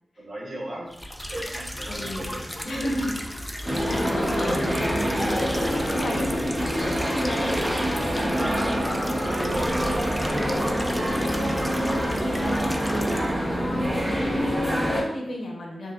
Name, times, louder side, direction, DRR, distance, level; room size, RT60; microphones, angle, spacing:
voice 1, 0.2-0.9 1.3-2.9 3.5-4.8 5.4-6.4 9.3-10.7, right 1 dB, 70° right, -5 dB, 1.2 m, -36 dB
sound 1, 0.9-13.3, equal, 10° left, 0.4 m, -35 dB
voice 2, 1.9-2.3 2.6-3.2 3.5-6.2 6.6-8.6 9.0-9.5 10.3-10.7 11.4-15.9, left 1 dB, 75° left, -1 dB, 0.9 m, -34 dB
sound 2, 3.7-15.0, equal, 20° right, 0.7 m, -25 dB
4.6 x 2.9 x 2.4 m, 0.88 s
cardioid pair, 65°, 0 cm